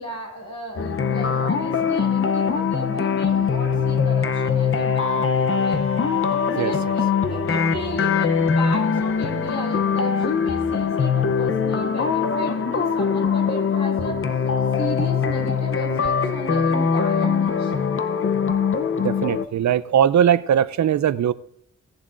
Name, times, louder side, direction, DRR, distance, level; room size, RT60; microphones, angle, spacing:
voice 1, 0.0-5.8 6.5-14.3 14.7-18.0, right 1 dB, 70° left, -1 dB, 5.4 m, -35 dB
sound 1, 0.8-19.5, left 6 dB, 45° left, 0.7 m, -22 dB
voice 2, 19.0-21.3, right 9 dB, 70° right, 16 dB, 0.5 m, -20 dB
17.0 x 11.0 x 2.6 m, 0.75 s
wide cardioid pair, 180°, 29 cm